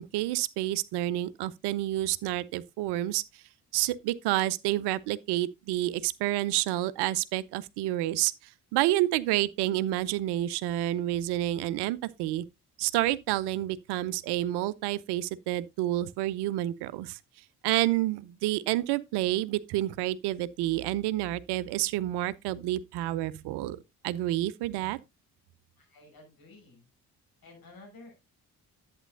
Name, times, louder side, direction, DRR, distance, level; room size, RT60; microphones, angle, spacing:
voice 1, 0.0-3.4 3.7-8.3 8.7-12.4 12.8-17.2 17.6-23.8 24.0-25.0, right 15 dB, 65° right, 0.6 m, -29 dB
voice 2, 25.8-26.9 27.4-28.2, left 2 dB, 50° left, 5.7 m, -52 dB
11.0 x 8.3 x 2.6 m
figure-of-eight pair, 40°, 44 cm